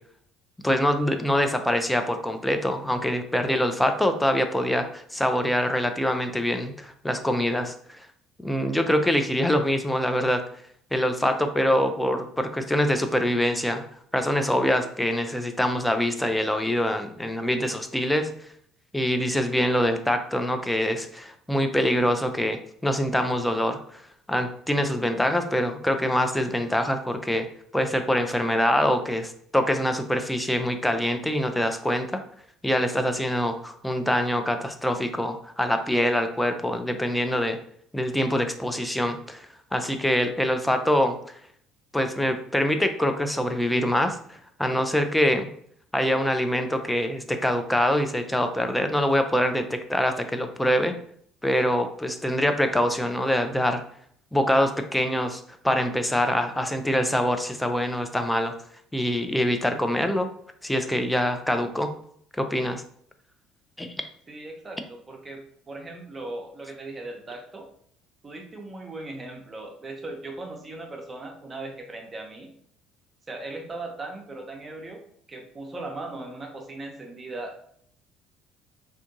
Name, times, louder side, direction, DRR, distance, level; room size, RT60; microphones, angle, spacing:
voice 1, 0.6-8.1 8.4-10.4 10.9-13.8 14.1-18.3 18.9-24.0 24.3-27.5 27.7-32.2 32.6-37.6 37.9-41.2 41.9-45.5 45.9-50.9 51.4-53.8 54.3-58.5 58.9-60.3 60.6-61.9 62.4-62.8 63.8-63.9, equal, 5° left, 7 dB, 0.5 m, -24 dB
voice 2, 64.3-65.4 65.7-67.7 68.2-72.5 73.3-75.0 75.3-77.6, right 2 dB, 30° right, 2 dB, 0.7 m, -38 dB
3.4 x 2.7 x 2.6 m, 0.64 s
hypercardioid pair, 60°, 0 cm